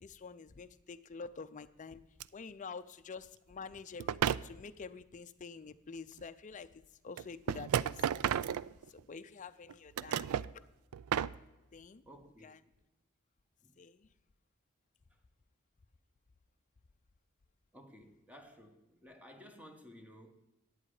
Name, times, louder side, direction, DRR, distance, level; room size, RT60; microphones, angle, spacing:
voice 1, 0.0-2.0 2.3-8.1 8.9-10.3 10.5-10.6 11.7-12.0 12.4-12.6 13.8-14.1, left 5 dB, 35° left, 0.5 m, -48 dB
sound 1, 2.2-2.3 4.0-4.5 6.2-6.3 7.2-9.1 9.7-10.5 10.9-11.4, right 9 dB, 80° right, 0.3 m, -33 dB
voice 2, 12.1-12.5 13.6-13.8 17.7-20.3, equal, 5° right, 1.1 m, -55 dB
11.0 x 8.8 x 4.9 m
head